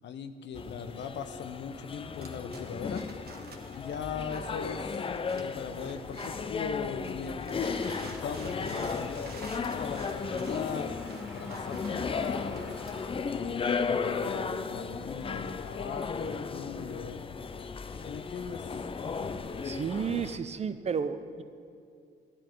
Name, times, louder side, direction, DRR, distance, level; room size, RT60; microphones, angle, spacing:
voice 1, 0.0-3.0 3.7-5.0 5.3-10.9 11.3-12.8 13.2-17.2 18.1-18.7, left 6 dB, 65° left, 9 dB, 0.7 m, -39 dB
sound 1, 0.5-20.4, left 5 dB, 25° left, 0.5 m, -35 dB
sound 2, 2.1-6.6 7.0-12.1, right 4 dB, 50° right, 1.3 m, -50 dB
Rain, 7.8-13.1, equal, ahead, 2.2 m, -48 dB
voice 2, 19.6-21.4, right 6 dB, 35° right, 12 dB, 0.6 m, -32 dB
11.5 x 10.0 x 4.6 m, 2.4 s
cardioid pair, 90°, 20 cm